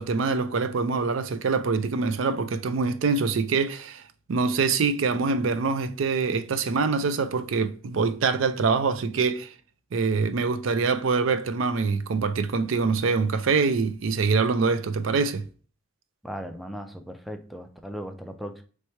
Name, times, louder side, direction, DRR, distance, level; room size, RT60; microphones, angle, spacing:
voice 1, 0.0-4.0 4.3-9.5 9.9-15.4, right 4 dB, 70° right, 0.4 m, -24 dB
voice 2, 16.2-18.6, equal, ahead, 0.4 m, -37 dB
3.3 x 3.2 x 4.2 m
head